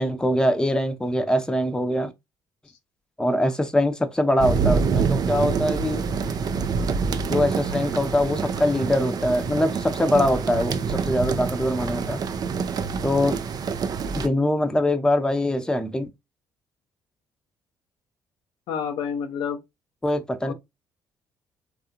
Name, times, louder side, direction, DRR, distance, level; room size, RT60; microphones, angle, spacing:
voice 1, 0.0-2.1 3.2-6.0 7.2-12.2 13.0-13.4 14.2-16.1 20.0-20.5, left 1 dB, 10° left, 0.6 m, -23 dB
sound 1, 4.4-14.3, right 5 dB, 45° right, 0.4 m, -26 dB
voice 2, 18.7-19.6 20.4-20.5, left 7 dB, 65° left, 0.5 m, -28 dB
3.4 x 2.4 x 2.7 m
hypercardioid pair, 50°, 9 cm